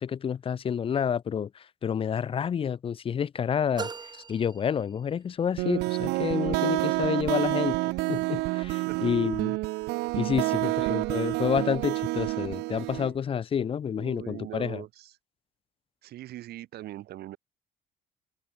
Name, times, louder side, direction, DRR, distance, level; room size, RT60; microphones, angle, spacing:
voice 1, 0.0-3.9 4.3-9.5 10.1-14.8, left 7 dB, 35° left, 0.5 m, -29 dB
sound 1, 3.8-5.4, right 5 dB, 25° right, 0.8 m, -40 dB
sound 2, 5.6-13.1, right 22 dB, 85° right, 0.5 m, -28 dB
voice 2, 10.5-11.0 13.9-15.1 16.0-17.4, right 14 dB, 70° right, 1.7 m, -41 dB
cardioid pair, 110°, 17 cm